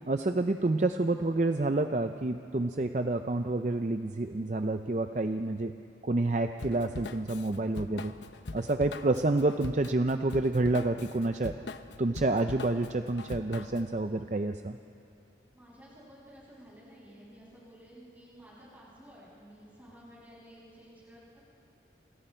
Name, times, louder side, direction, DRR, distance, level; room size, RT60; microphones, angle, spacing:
voice 1, 0.1-5.7 6.0-8.1 8.5-11.5 12.0-14.8, right 2 dB, 40° right, 7 dB, 0.5 m, -28 dB
Drum kit / Drum, 6.6-13.9, left 3 dB, 80° left, 0.8 m, -42 dB
voice 2, 15.5-21.4, equal, 10° right, -7 dB, 7.4 m, -53 dB
28.5 x 27.5 x 4.5 m, 2.7 s
head